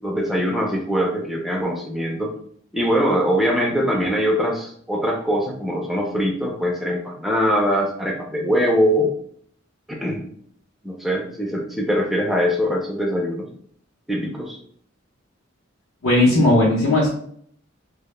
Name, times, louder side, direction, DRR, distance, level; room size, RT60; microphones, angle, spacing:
voice 1, 0.0-2.4 2.7-9.1 9.9-10.3 10.8-13.5 14.1-14.6, equal, ahead, -1 dB, 0.3 m, -22 dB
voice 2, 16.0-17.1, left 1 dB, 85° left, -6 dB, 0.6 m, -16 dB
2.1 x 2.0 x 3.0 m, 0.63 s
head